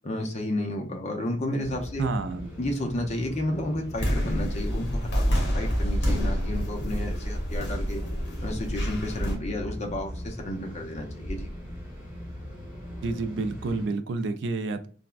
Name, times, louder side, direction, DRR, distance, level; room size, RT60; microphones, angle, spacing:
voice 1, 0.0-2.1 2.6-8.0 8.4-11.5, left 1 dB, 40° left, 3 dB, 0.6 m, -32 dB
sound 1, 1.6-13.9, equal, 10° right, 1.0 m, -39 dB
voice 2, 2.0-2.5 13.0-14.9, right 3 dB, 75° right, 9 dB, 0.4 m, -29 dB
sound 2, 3.9-9.4, equal, 65° left, 1.0 m, -27 dB
3.4 x 2.1 x 2.4 m, 0.42 s
head